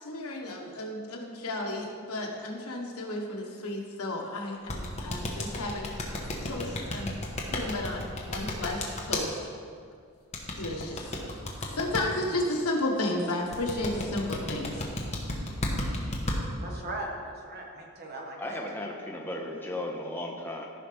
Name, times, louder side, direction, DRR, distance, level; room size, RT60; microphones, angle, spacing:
voice 1, 0.0-7.2 7.5-9.4 10.5-11.2 11.7-14.8, left 1 dB, 80° left, 1 dB, 1.3 m, -33 dB
sound 1, 4.7-9.2 10.3-12.0 13.5-16.4, left 2 dB, 30° left, 1.1 m, -32 dB
voice 2, 16.6-18.9, right 1 dB, 45° right, 0 dB, 1.4 m, -39 dB
voice 3, 18.4-20.7, left 1 dB, 10° left, -1 dB, 0.6 m, -35 dB
14.5 x 5.8 x 3.4 m, 2.2 s
head